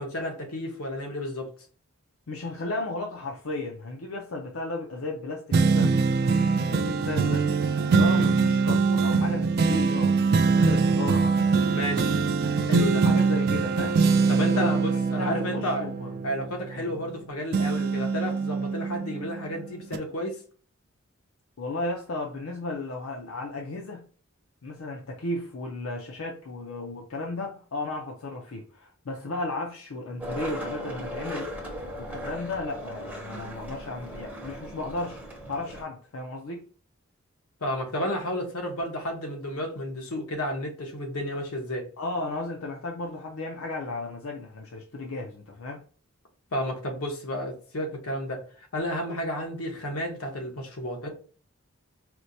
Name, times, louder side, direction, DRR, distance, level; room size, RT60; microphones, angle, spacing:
voice 1, 0.0-1.5 11.7-12.1 12.7-13.1 14.3-15.9 16.2-20.4 37.6-41.9 46.5-48.4 48.7-51.1, equal, 85° left, 1.0 m, -32 dB
voice 2, 2.3-6.0 6.3-10.1 10.4-11.5 12.9-14.0 14.3-14.8 15.2-16.3 16.7-16.9 21.6-24.0 24.6-31.5 32.0-36.6 42.0-45.8, left 2 dB, 70° left, 0.5 m, -34 dB
sound 1, 5.5-17.2 17.5-19.4 19.9-20.0, right 4 dB, 45° right, 0.3 m, -23 dB
Skateboard, 30.2-35.8, equal, 10° right, 0.7 m, -37 dB
4.3 x 2.1 x 2.6 m
head